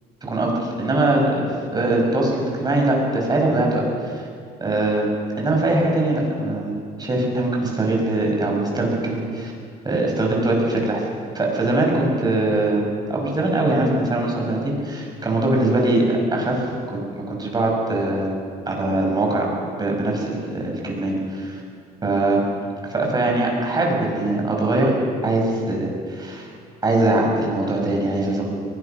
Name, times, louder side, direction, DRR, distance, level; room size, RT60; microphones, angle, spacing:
voice 1, 0.2-0.5 0.8-1.5 1.7-4.2 4.6-5.1 5.4-6.7 7.0-9.5 9.8-11.0 11.3-12.8 13.1-16.7 16.9-17.0 17.3-18.3 18.7-19.5 19.8-21.6 22.0-22.4 22.9-25.0 25.2-26.5 26.8-28.4, right 2 dB, 25° right, -1 dB, 6.8 m, -21 dB
22.5 x 19.5 x 6.2 m, 2.1 s
cardioid pair, 110°, 17 cm